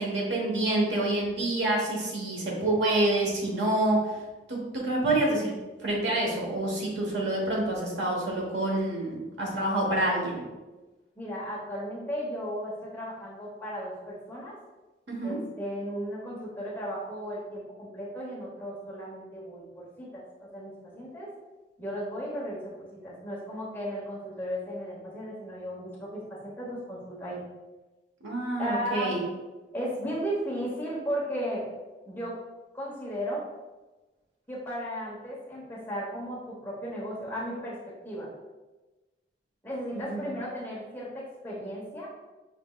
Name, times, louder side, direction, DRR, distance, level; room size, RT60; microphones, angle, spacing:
voice 1, 0.0-4.2 4.5-5.5 5.8-10.4 15.1-15.4 28.2-29.2 39.9-40.3, right 1 dB, 90° right, -2 dB, 1.2 m, -27 dB
voice 2, 11.2-14.5 15.2-21.3 21.8-27.4 28.6-29.1 29.7-31.6 32.1-32.3 32.7-33.4 34.5-38.3 39.6-42.1, equal, 10° left, -6 dB, 1.1 m, -35 dB
6.0 x 3.4 x 2.4 m, 1.2 s
head